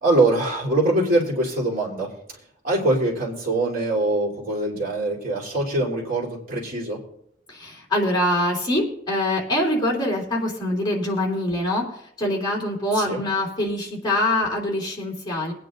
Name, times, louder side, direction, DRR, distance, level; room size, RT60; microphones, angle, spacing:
voice 1, 0.0-2.1 2.6-7.0 12.9-13.2, right 2 dB, 50° right, -3 dB, 3.3 m, -23 dB
voice 2, 7.5-15.5, left 1 dB, 25° left, -2 dB, 3.0 m, -24 dB
22.5 x 9.3 x 2.6 m, 0.69 s
head